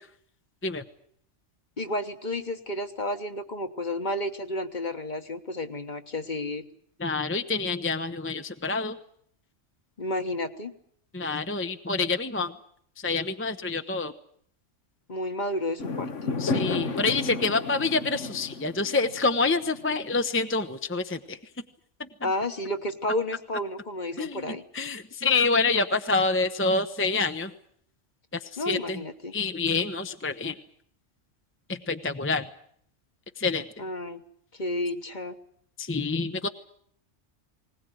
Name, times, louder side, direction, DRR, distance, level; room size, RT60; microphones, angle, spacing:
voice 1, 1.8-6.6 10.0-10.7 15.1-16.3 22.2-24.6 28.6-29.3 33.8-34.2 34.5-35.4, left 1 dB, 40° left, 8 dB, 1.4 m, -31 dB
voice 2, 7.0-9.0 11.1-12.5 13.0-14.1 16.4-21.4 22.0-22.1 24.2-27.5 28.3-29.0 29.3-30.6 31.7-32.5 33.4-33.6 35.8-36.5, left 3 dB, 10° left, 8 dB, 0.7 m, -27 dB
Fireworks, 15.8-20.3, left 4 dB, 80° left, 1.6 m, -32 dB
20.5 x 19.5 x 9.2 m, 0.66 s
omnidirectional pair, 1.2 m